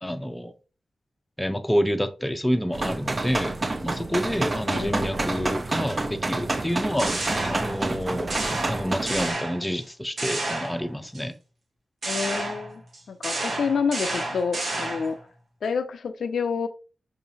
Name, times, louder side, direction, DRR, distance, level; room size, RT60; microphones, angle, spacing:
voice 1, 0.0-0.5 1.4-3.5 3.8-7.1 7.5-11.3, equal, 10° left, 0.5 m, -28 dB
sound 1, 2.7-9.3, right 2 dB, 40° right, 0.5 m, -28 dB
voice 2, 4.7-5.1 12.1-12.8 13.1-15.2 15.6-16.7, left 5 dB, 90° left, 0.3 m, -28 dB
sound 2, 6.7-8.0 8.3-9.8 10.2-11.2 12.0-15.2, right 2 dB, 70° right, 1.0 m, -31 dB
4.9 x 2.7 x 2.7 m
cardioid pair, 65°, 0 cm